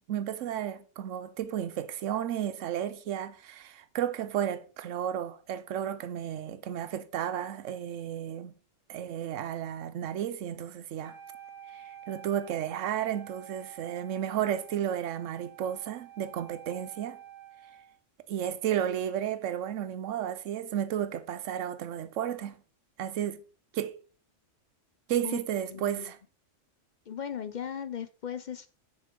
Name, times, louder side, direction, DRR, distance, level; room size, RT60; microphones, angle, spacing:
voice 1, 0.1-8.5 8.9-11.2 11.7-17.2 18.3-22.6 23.0-23.4 23.7-24.0 25.1-26.2, right 10 dB, 80° right, 1.0 m, -33 dB
Wind instrument woodwind instrument, 11.0-18.0, right 10 dB, 60° right, 2.4 m, -49 dB
voice 2, 25.7-26.1 27.1-28.7, left 8 dB, 55° left, 0.5 m, -37 dB
6.7 x 6.2 x 5.2 m
omnidirectional pair, 1.3 m